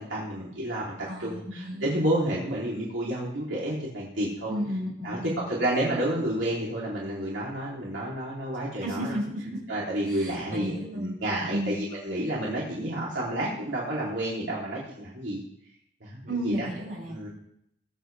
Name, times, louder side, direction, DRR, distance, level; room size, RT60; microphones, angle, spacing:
voice 1, 0.0-4.6 5.0-5.2 5.5-9.1 9.7-15.4 16.0-16.7 17.1-17.3, right 1 dB, 80° right, -6 dB, 3.4 m, -30 dB
voice 2, 1.0-1.9 4.5-5.5 8.8-9.6 10.1-11.1 11.5-11.8 16.3-17.2, equal, 45° right, -5 dB, 6.0 m, -33 dB
20.0 x 8.4 x 3.5 m, 0.73 s
head